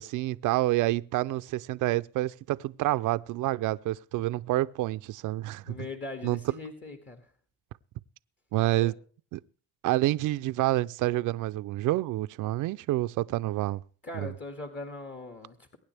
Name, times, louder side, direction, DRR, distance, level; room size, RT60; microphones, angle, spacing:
voice 1, 0.0-5.8 6.2-6.4 8.5-8.9 9.3-9.4 9.8-13.8 14.1-14.3, right 16 dB, 85° right, 0.5 m, -28 dB
voice 2, 5.6-7.3 8.7-9.0 14.0-15.8, left 2 dB, 40° left, 2.1 m, -40 dB
23.0 x 9.7 x 3.4 m
cardioid pair, 90°, 30 cm